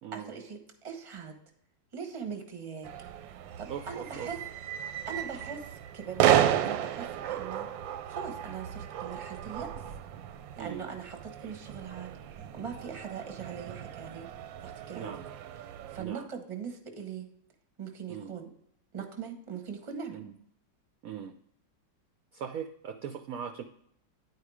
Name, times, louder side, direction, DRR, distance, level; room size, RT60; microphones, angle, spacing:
voice 1, 0.1-1.4 1.9-2.9 3.6-4.4 5.0-9.7 10.6-14.3 14.6-15.1 15.6-17.3 17.8-18.5 18.9-20.2, right 6 dB, 25° right, 4 dB, 0.8 m, -41 dB
sound 1, 2.8-16.0, right 11 dB, 90° right, 1.3 m, -33 dB
voice 2, 3.7-4.3 10.6-10.9 15.0-15.2 16.0-16.2 18.1-18.3 20.1-20.3 21.0-21.3 22.3-23.6, right 8 dB, 70° right, 6 dB, 0.8 m, -39 dB
9.7 x 4.7 x 4.7 m, 0.72 s
omnidirectional pair, 2.0 m